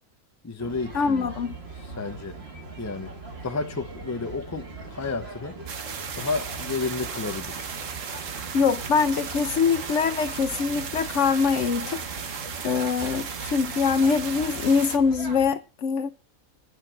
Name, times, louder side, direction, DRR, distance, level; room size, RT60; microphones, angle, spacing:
voice 1, 0.4-1.3 1.8-2.4 2.8-3.2 3.4-5.6 6.2-7.7, left 4 dB, 15° left, 0.6 m, -31 dB
sound 1, 0.6-15.5, right 3 dB, 45° right, 1.7 m, -41 dB
voice 2, 0.9-1.5 8.5-12.0 12.6-16.1, left 5 dB, 60° left, 1.0 m, -23 dB
sound 2, 5.7-15.0, right 6 dB, 60° right, 1.4 m, -35 dB
10.5 x 6.6 x 7.5 m
omnidirectional pair, 1.5 m